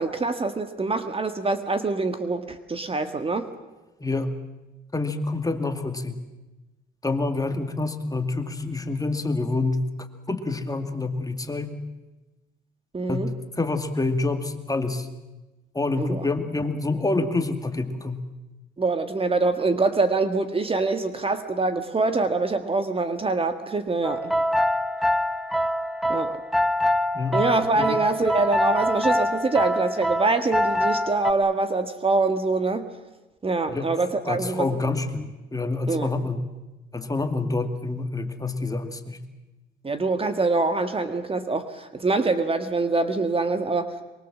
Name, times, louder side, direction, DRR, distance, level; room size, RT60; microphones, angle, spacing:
voice 1, 0.0-3.5 12.9-13.3 16.0-16.3 18.8-24.3 26.1-26.4 27.3-32.9 33.4-34.7 35.9-36.1 39.8-43.9, right 3 dB, 30° right, 8 dB, 1.6 m, -24 dB
voice 2, 4.0-4.3 4.9-6.2 7.0-9.9 10.3-11.7 13.1-15.1 15.7-18.2 27.1-27.4 27.7-28.0 33.7-33.9 34.2-36.5 36.9-39.2, left 3 dB, 20° left, 6 dB, 2.3 m, -27 dB
sound 1, 24.0-31.3, equal, ahead, 1.0 m, -24 dB
24.0 x 23.0 x 7.5 m, 1.1 s
cardioid pair, 90°, 20 cm